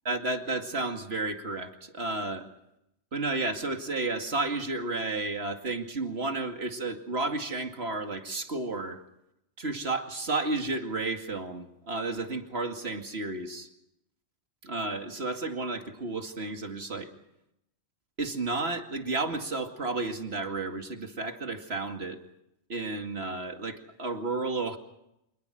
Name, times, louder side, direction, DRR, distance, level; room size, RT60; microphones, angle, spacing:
voice 1, 0.0-2.5 3.1-9.0 9.6-13.7 14.6-17.1 18.2-22.2 22.7-24.8, right 3 dB, 60° right, 5 dB, 2.6 m, -32 dB
27.0 x 21.0 x 6.4 m, 0.82 s
omnidirectional pair, 1.2 m